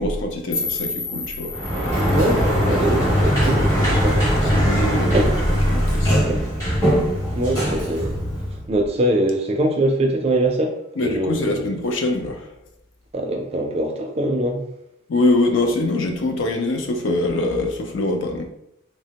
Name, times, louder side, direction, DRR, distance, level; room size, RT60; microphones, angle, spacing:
voice 1, 0.0-1.5 4.4-5.2 5.5-6.2 11.0-12.4 15.1-18.5, left 2 dB, 90° left, 3 dB, 0.5 m, -23 dB
sound 1, 0.5-3.5, left 4 dB, 35° left, 0.4 m, -31 dB
Sliding door, 1.5-8.7, equal, 15° left, 1.0 m, -20 dB
voice 2, 2.1-4.2 5.1-5.4 6.2-6.4 7.3-8.1 8.7-10.8 11.0-11.7 13.1-14.7, right 1 dB, 30° right, 2 dB, 0.4 m, -23 dB
3.2 x 2.1 x 2.8 m, 0.78 s
head